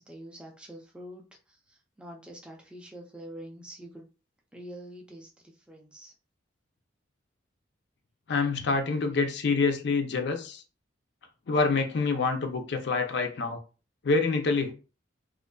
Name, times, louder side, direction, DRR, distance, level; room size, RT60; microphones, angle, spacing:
voice 1, 0.0-4.1 4.5-6.1, right 1 dB, 5° right, 1 dB, 0.4 m, -46 dB
voice 2, 8.3-10.6 11.5-13.6 14.0-14.7, left 4 dB, 60° left, 5 dB, 0.4 m, -26 dB
2.4 x 2.4 x 2.2 m, 0.35 s
head